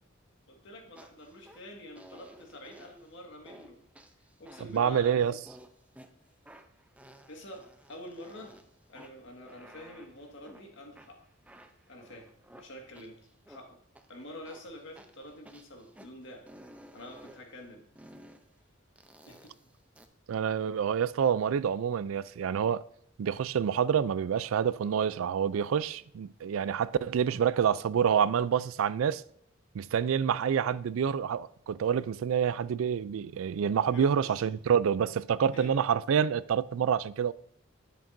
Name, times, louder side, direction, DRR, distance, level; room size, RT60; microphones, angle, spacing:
voice 1, 0.5-3.8 4.4-5.2 7.3-8.5 8.9-11.2 11.9-12.3 12.6-13.2 13.5-13.8 14.1-16.5 16.9-17.8 19.3-19.5 33.9-34.5 35.5-35.8, left 1 dB, 65° left, 1.8 m, -47 dB
sound 1, 1.0-1.6 2.0-3.1 3.5-3.7 4.0-4.9 5.5-6.1 6.5-8.6 9.0-10.6 10.9-13.6 14.0-14.1 14.5-16.1 16.5-17.4 18.0-18.4 19.0-20.1, right 1 dB, 5° right, 0.5 m, -54 dB
voice 2, 4.7-5.4 20.3-22.8 23.2-29.2 29.7-37.3, right 8 dB, 85° right, 0.3 m, -27 dB
10.5 x 7.4 x 2.6 m
head